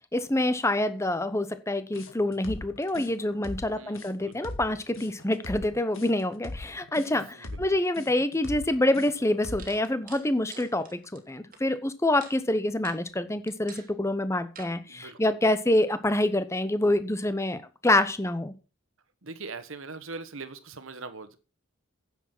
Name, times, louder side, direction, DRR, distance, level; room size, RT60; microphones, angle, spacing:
voice 1, 0.1-18.5, left 1 dB, 15° left, 12 dB, 0.8 m, -26 dB
sound 1, 1.9-9.8, left 2 dB, 65° left, 1.9 m, -40 dB
voice 2, 3.8-4.5 7.4-7.6 14.9-15.2 19.2-21.4, right 4 dB, 65° right, 12 dB, 1.3 m, -41 dB
sound 2, 8.8-8.9 9.6-11.6 12.2-12.4 12.8-13.0 13.5-13.9 14.6-14.7, right 6 dB, 40° right, 2.1 m, -47 dB
9.9 x 7.2 x 6.1 m, 0.33 s
head